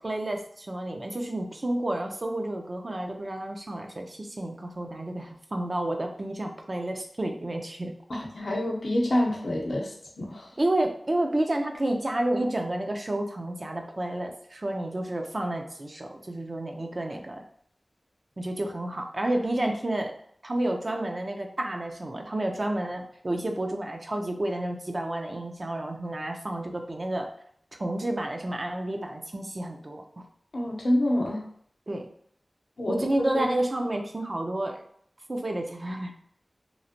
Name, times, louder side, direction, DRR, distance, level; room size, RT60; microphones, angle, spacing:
voice 1, 0.0-7.9 10.6-17.4 18.4-20.1 20.4-27.3 27.8-30.2 31.9-32.1 32.9-34.8 35.3-36.1, right 1 dB, 50° right, 3 dB, 0.5 m, -30 dB
voice 2, 8.1-10.5 30.5-31.4 32.8-33.5, left 1 dB, 85° left, -1 dB, 0.7 m, -27 dB
3.1 x 2.4 x 2.6 m, 0.65 s
wide cardioid pair, 40°, 0 cm